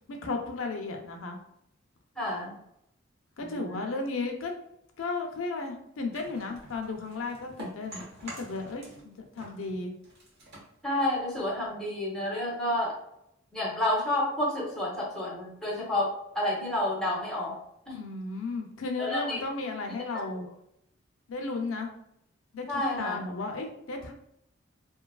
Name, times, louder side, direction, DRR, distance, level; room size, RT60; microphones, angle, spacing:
voice 1, 0.1-1.4 3.4-4.5 5.0-9.9 17.9-20.5 21.3-21.9 22.5-22.7 23.0-24.1, left 3 dB, 75° left, 3 dB, 0.5 m, -34 dB
voice 2, 2.2-2.6 3.4-4.0 10.8-13.0 13.5-17.6 17.9-18.0 19.0-19.4 20.1-20.2 22.7-23.2, left 1 dB, ahead, -4 dB, 0.6 m, -30 dB
sound 1, 6.1-9.1 9.3-11.7, right 1 dB, 55° right, 1.0 m, -47 dB
2.7 x 2.3 x 2.3 m, 0.75 s
head